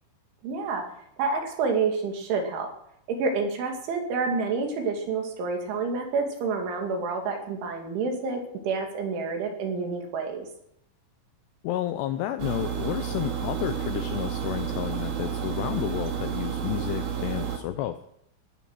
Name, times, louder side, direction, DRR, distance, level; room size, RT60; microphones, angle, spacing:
voice 1, 0.4-0.8 1.2-2.7 3.1-10.5, right 4 dB, 75° right, 2 dB, 4.9 m, -28 dB
voice 2, 11.6-18.0, left 13 dB, 85° left, 9 dB, 2.4 m, -31 dB
sound 1, 12.4-17.6, right 8 dB, 50° right, 3.0 m, -31 dB
17.0 x 11.5 x 6.3 m, 0.73 s
omnidirectional pair, 5.6 m